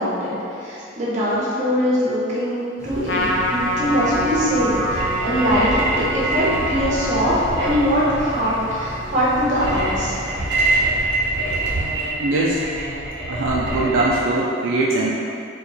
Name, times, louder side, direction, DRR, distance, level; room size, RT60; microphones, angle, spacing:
voice 1, 0.0-10.1, equal, 35° right, -8 dB, 1.1 m, -22 dB
sound 1, 2.8-12.0, equal, 15° left, 0.6 m, -35 dB
Trumpet, 3.1-9.8, equal, 65° left, 0.4 m, -27 dB
sound 2, 4.7-14.2, right 2 dB, 60° right, 0.9 m, -25 dB
voice 2, 12.2-12.6 13.3-15.1, right 2 dB, 80° right, -4 dB, 0.4 m, -21 dB
4.3 x 2.4 x 4.0 m, 2.6 s
head